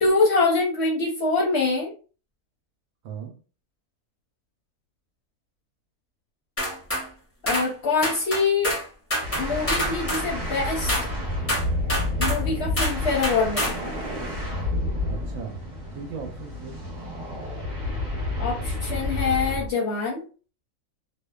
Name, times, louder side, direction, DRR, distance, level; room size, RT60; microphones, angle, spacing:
voice 1, 0.0-1.9 7.4-8.7 9.4-10.9 12.2-13.9 18.4-20.2, left 4 dB, 60° left, -2 dB, 0.7 m, -24 dB
voice 2, 3.0-3.4 15.0-16.8, right 6 dB, 75° right, 3 dB, 1.0 m, -38 dB
sound 1, 6.6-7.1 7.5-7.7 8.0-8.8 9.1-10.3 10.9-11.1 11.5-12.4 12.8-13.0 13.2-13.8, equal, 15° left, 0.5 m, -26 dB
sound 2, 9.2-19.7, left 1 dB, 40° right, 0.8 m, -29 dB
2.6 x 2.1 x 2.2 m, 0.37 s
omnidirectional pair, 1.6 m